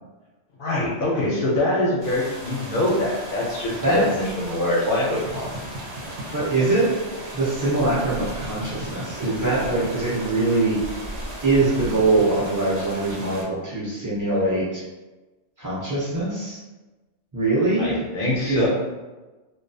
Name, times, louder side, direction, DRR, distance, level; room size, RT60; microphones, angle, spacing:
voice 1, 0.6-5.5 17.8-18.7, left 1 dB, 60° left, -4 dB, 0.6 m, -24 dB
sound 1, 2.0-13.4, right 1 dB, 65° right, 0.9 m, -36 dB
sound 2, 3.6-4.2 5.1-7.3 8.2-10.5 11.6-12.6, right 1 dB, 85° right, 1.0 m, -38 dB
voice 2, 6.3-7.0 7.3-10.8 11.4-14.8 15.6-16.6 17.3-17.9 18.4-18.7, right 2 dB, 25° right, -7 dB, 0.5 m, -22 dB
2.3 x 2.3 x 2.5 m, 1.2 s
omnidirectional pair, 1.2 m